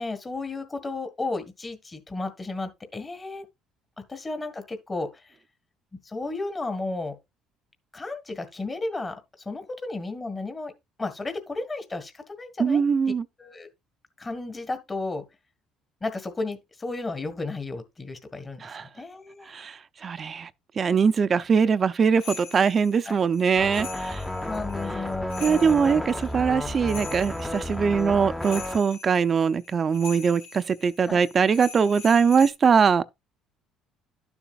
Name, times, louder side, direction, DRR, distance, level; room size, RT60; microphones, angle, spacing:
voice 1, 0.0-3.4 4.1-5.4 6.0-7.1 7.9-10.7 11.0-12.8 13.4-13.7 14.2-15.2 16.0-19.5 23.0-23.2 24.3-26.0 31.0-31.2, left 3 dB, 25° left, 1.7 m, -33 dB
voice 2, 12.6-13.2 18.6-18.8 19.5-20.5 20.8-24.2 25.4-33.0, right 6 dB, 40° right, 0.6 m, -22 dB
sound 1, 22.2-32.5, left 5 dB, 90° left, 3.2 m, -43 dB
sound 2, 23.6-28.8, left 1 dB, 10° left, 0.9 m, -32 dB
12.0 x 7.1 x 2.4 m
supercardioid pair, 80°, 0 cm